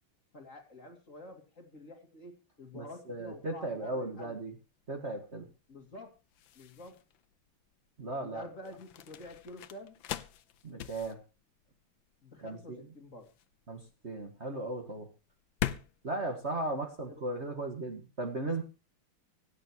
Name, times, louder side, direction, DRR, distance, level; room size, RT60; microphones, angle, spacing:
voice 1, 0.3-4.4 5.7-6.2 6.6-7.0 8.2-10.0 12.2-13.3 17.0-17.2, left 2 dB, 35° left, 4 dB, 2.5 m, -48 dB
voice 2, 2.7-4.5 4.9-5.5 8.0-8.5 10.6-11.2 12.4-12.8 13.7-15.1 16.0-18.6, right 2 dB, 35° right, 5 dB, 1.9 m, -36 dB
sound 1, 3.6-17.5, left 11 dB, 70° left, 1.5 m, -43 dB
25.0 x 8.4 x 3.0 m, 0.32 s
omnidirectional pair, 2.3 m